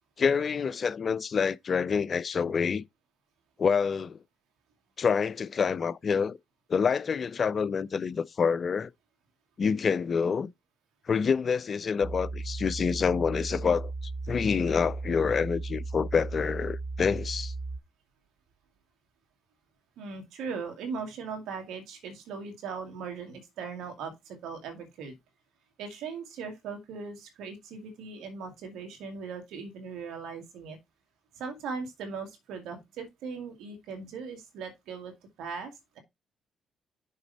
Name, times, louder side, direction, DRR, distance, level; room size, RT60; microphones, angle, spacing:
voice 1, 0.2-2.8 3.6-4.2 5.0-6.4 6.7-8.9 9.6-10.5 11.1-13.9 14.3-17.5, left 6 dB, 50° left, 0.4 m, -27 dB
sound 1, 12.0-17.8, right 3 dB, 35° right, 1.3 m, -36 dB
voice 2, 20.0-25.1 25.8-30.8 31.3-35.1 35.4-36.0, right 5 dB, 80° right, 2.4 m, -39 dB
6.7 x 5.0 x 4.1 m
supercardioid pair, 65°, 0 cm